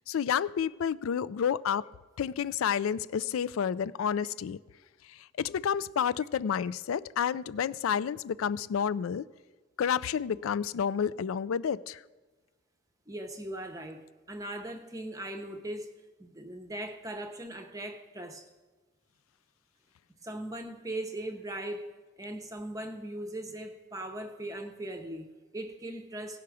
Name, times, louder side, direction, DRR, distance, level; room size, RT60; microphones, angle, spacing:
voice 1, 0.1-1.9 2.2-4.6 5.1-9.2 9.8-12.0, left 7 dB, 90° left, 18 dB, 0.3 m, -30 dB
voice 2, 13.1-15.9 16.2-18.5 20.2-21.9 22.2-26.4, right 1 dB, 15° right, 5 dB, 0.7 m, -39 dB
17.5 x 5.8 x 4.8 m, 1.2 s
head